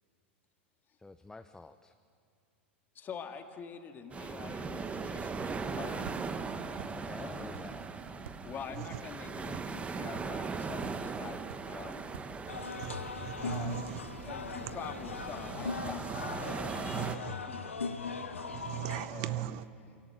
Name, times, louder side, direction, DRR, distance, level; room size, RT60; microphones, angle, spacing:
voice 1, 1.0-1.9 6.9-8.1, left 3 dB, 10° left, 10 dB, 0.6 m, -50 dB
voice 2, 2.9-6.1 7.2-7.6 8.4-12.1 13.4-13.8 14.1-16.2 16.8-17.8 19.1-20.0, left 7 dB, 30° left, 6 dB, 1.8 m, -46 dB
sound 1, 4.1-17.2, right 4 dB, 20° right, 1.1 m, -39 dB
sound 2, 4.5-14.0, right 6 dB, 70° right, 1.4 m, -53 dB
Band in Brazilian Restaurant in Viñales, 12.5-19.1, left 4 dB, 90° left, 1.3 m, -39 dB
voice 3, 12.8-14.0 16.9-17.3 18.5-19.6, right 15 dB, 50° right, 16 dB, 0.6 m, -38 dB
24.0 x 17.5 x 8.0 m, 2.4 s
hypercardioid pair, 95°, 7 cm